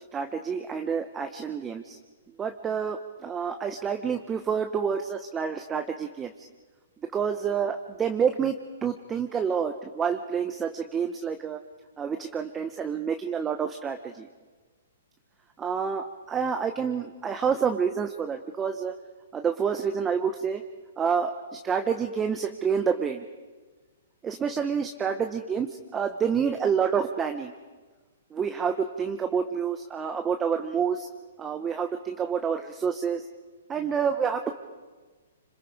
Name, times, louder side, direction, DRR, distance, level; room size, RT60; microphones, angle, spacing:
voice 1, 0.1-2.0 2.4-6.5 7.1-8.6 8.8-11.6 12.0-14.3 15.6-18.9 19.3-20.6 21.0-23.3 24.2-27.5 28.3-31.1 31.4-33.2 33.7-34.5, right 6 dB, 15° right, 6 dB, 0.8 m, -28 dB
26.5 x 26.0 x 4.8 m, 1.4 s
hypercardioid pair, 155°, 0 cm